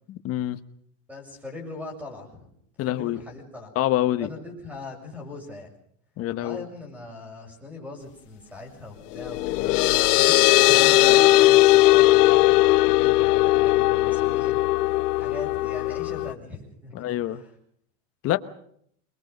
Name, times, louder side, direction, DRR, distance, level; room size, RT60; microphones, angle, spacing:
voice 1, 0.1-0.6 2.8-3.2 3.7-4.3 6.2-6.6 10.7-10.9 16.9-17.4 18.2-18.4, left 14 dB, 30° left, 10 dB, 1.2 m, -26 dB
voice 2, 1.1-2.5 2.8-3.7 4.2-5.7 6.4-14.7 15.1-17.5, left 2 dB, 5° right, 3 dB, 7.2 m, -41 dB
sound 1, 9.2-16.3, left 18 dB, 80° left, 1.3 m, -18 dB
28.0 x 21.5 x 5.3 m, 0.67 s
supercardioid pair, 165°, 46 cm